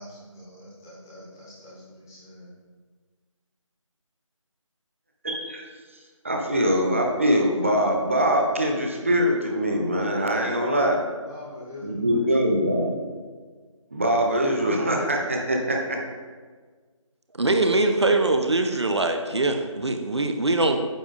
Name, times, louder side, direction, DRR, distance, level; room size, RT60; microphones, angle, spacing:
voice 1, 0.0-2.5 10.6-12.3, left 1 dB, 5° left, -11 dB, 0.8 m, -41 dB
voice 2, 5.2-5.7 6.2-10.9 11.8-13.1 13.9-16.0, equal, 25° right, 1 dB, 0.7 m, -23 dB
voice 3, 17.4-20.8, right 2 dB, 55° right, 6 dB, 0.7 m, -22 dB
9.0 x 7.0 x 2.5 m, 1.5 s
figure-of-eight pair, 165°, 17 cm